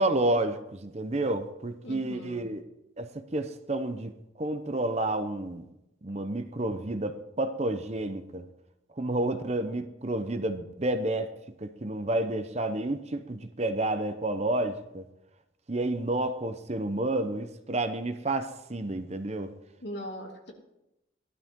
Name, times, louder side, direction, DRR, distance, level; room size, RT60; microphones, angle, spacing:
voice 1, 0.0-2.6 3.0-5.7 6.0-8.4 9.0-11.3 11.6-15.0 15.7-19.5, right 2 dB, 35° right, 9 dB, 0.7 m, -30 dB
voice 2, 1.8-2.5 19.8-20.5, equal, 60° left, 1 dB, 2.8 m, -40 dB
16.5 x 12.0 x 3.7 m, 0.88 s
head